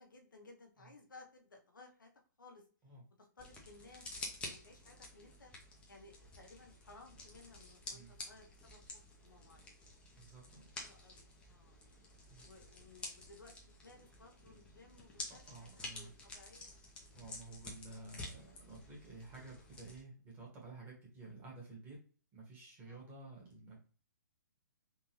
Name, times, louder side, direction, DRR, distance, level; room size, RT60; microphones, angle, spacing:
voice 1, 0.0-2.1 2.4-2.7 3.2-4.1 4.4-5.5 5.9-8.8 9.2-9.8 10.8-11.8 12.4-16.7 22.9-23.0, left 3 dB, 90° left, 3 dB, 1.0 m, -59 dB
sound 1, 3.4-20.0, left 2 dB, 10° left, 0.7 m, -51 dB
voice 2, 10.2-10.7 12.3-12.5 15.3-16.1 17.1-22.0 22.3-23.8, right 3 dB, 20° right, -3 dB, 1.5 m, -52 dB
3.7 x 2.6 x 3.0 m, 0.40 s
hypercardioid pair, 140°, 10 cm